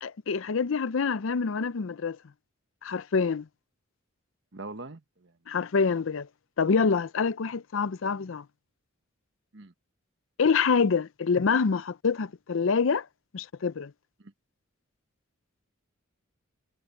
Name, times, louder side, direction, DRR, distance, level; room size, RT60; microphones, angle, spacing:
voice 1, 0.0-2.2 2.8-3.5 5.5-6.3 6.6-8.4 10.4-13.1 13.3-13.9, left 5 dB, 70° left, 0.5 m, -26 dB
voice 2, 4.5-5.3 9.5-9.7 14.2-14.3, right 3 dB, 55° right, 1.3 m, -42 dB
head